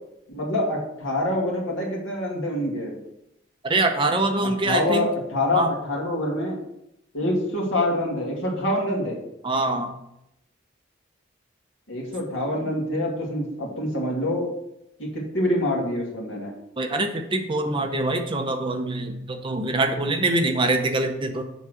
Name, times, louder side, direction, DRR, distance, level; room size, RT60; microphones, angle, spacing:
voice 1, 0.3-3.0 4.4-6.6 7.1-9.2 11.9-14.5 15.0-16.5, left 1 dB, 90° left, -2 dB, 2.2 m, -26 dB
voice 2, 3.6-5.1 5.5-5.7 9.4-9.9 16.8-21.4, right 2 dB, 25° right, 5 dB, 0.7 m, -24 dB
7.1 x 3.7 x 6.2 m, 0.83 s
head